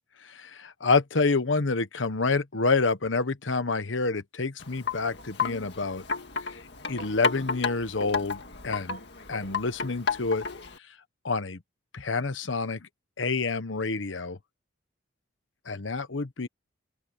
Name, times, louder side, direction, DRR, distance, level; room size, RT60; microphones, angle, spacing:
voice 1, 0.2-6.0 6.4-6.6 6.9-9.0 9.3-10.4 11.2-11.6 11.9-12.8 13.2-14.4 15.7-16.5, left 3 dB, 75° left, 1.2 m, -28 dB
Wind chime, 4.6-10.8, left 5 dB, 60° left, 2.1 m, -33 dB
open air
head